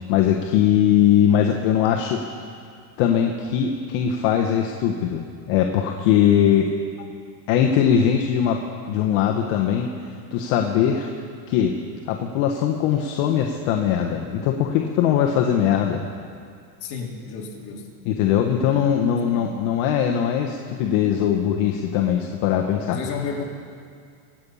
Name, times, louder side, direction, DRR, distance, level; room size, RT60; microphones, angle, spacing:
voice 1, 0.1-2.2 3.0-6.7 7.5-8.6 8.9-9.9 10.3-11.1 11.5-11.7 12.1-16.0 18.0-23.0, left 9 dB, 70° left, 2 dB, 1.4 m, -20 dB
voice 2, 16.8-17.9 19.3-19.5 22.9-23.4, left 6 dB, 50° left, -1 dB, 3.1 m, -31 dB
25.0 x 8.8 x 5.6 m, 2.2 s
supercardioid pair, 135°, 47 cm